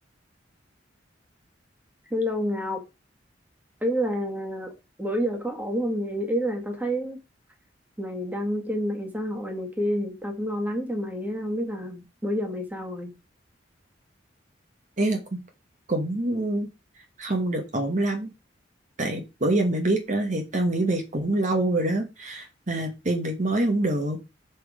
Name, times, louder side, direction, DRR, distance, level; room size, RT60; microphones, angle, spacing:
voice 1, 2.1-2.8 3.8-7.2 8.0-13.1, equal, 10° right, 1.7 m, -29 dB
voice 2, 15.0-15.4 15.9-16.7 17.2-18.3 19.0-24.2, right 2 dB, 40° right, 1.3 m, -25 dB
6.1 x 5.3 x 4.9 m
head